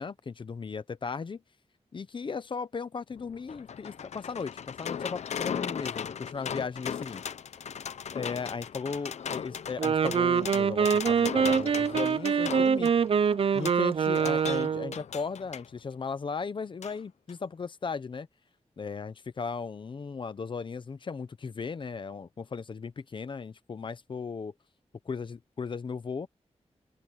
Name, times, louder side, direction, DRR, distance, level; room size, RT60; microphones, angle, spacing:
voice 1, 0.0-1.4 1.9-7.3 8.1-12.9 13.5-18.3 18.8-24.5 25.0-26.3, left 5 dB, 45° left, 0.9 m, -36 dB
sound 1, 3.1-15.7 16.8-17.0 17.3-17.4, left 7 dB, 75° left, 0.7 m, -38 dB
Wind instrument woodwind instrument, 9.7-15.0, right 6 dB, 55° right, 0.6 m, -25 dB
open air
wide cardioid pair, 165°, 12 cm